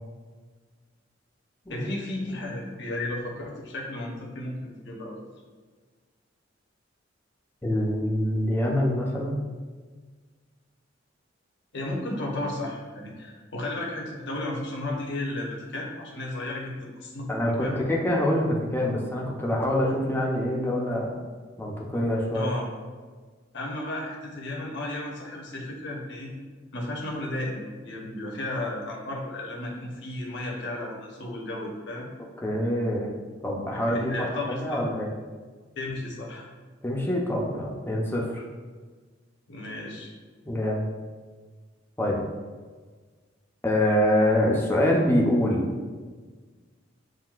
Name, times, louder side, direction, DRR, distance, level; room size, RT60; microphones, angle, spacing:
voice 1, 1.7-5.2 11.7-17.8 22.3-22.7 23.5-26.3 26.7-32.1 33.7-34.8 35.8-36.5 39.5-40.1, left 1 dB, 65° left, -2 dB, 1.0 m, -34 dB
voice 2, 7.6-9.4 17.3-21.1 21.6-22.5 32.4-33.1 33.4-35.1 36.8-38.4 40.4-40.8 42.0-42.2 43.6-45.7, left 1 dB, 10° left, -2 dB, 0.6 m, -25 dB
7.5 x 2.6 x 2.4 m, 1.5 s
head